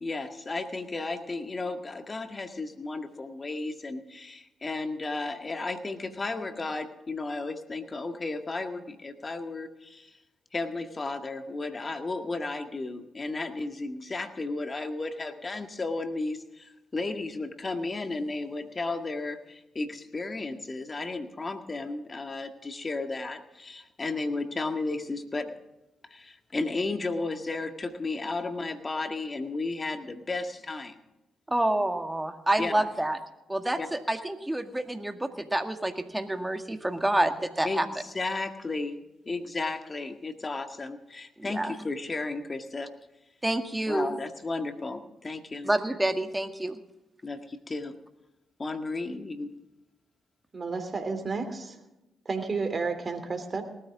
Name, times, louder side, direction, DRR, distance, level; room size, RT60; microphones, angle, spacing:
voice 1, 0.0-10.1 10.5-25.5 26.1-31.0 32.6-32.9 33.8-33.9 37.6-39.0 39.3-42.9 43.9-45.7 47.2-47.9 48.6-49.5, left 3 dB, 35° left, 7 dB, 1.9 m, -34 dB
voice 2, 31.5-33.2 33.5-37.9 41.4-41.7 43.4-44.1 45.6-46.8, right 1 dB, 15° right, 7 dB, 1.9 m, -28 dB
voice 3, 50.5-51.8 52.2-53.6, right 4 dB, 40° right, 7 dB, 3.0 m, -31 dB
19.0 x 13.5 x 3.7 m, 0.94 s
hypercardioid pair, 45°, 0 cm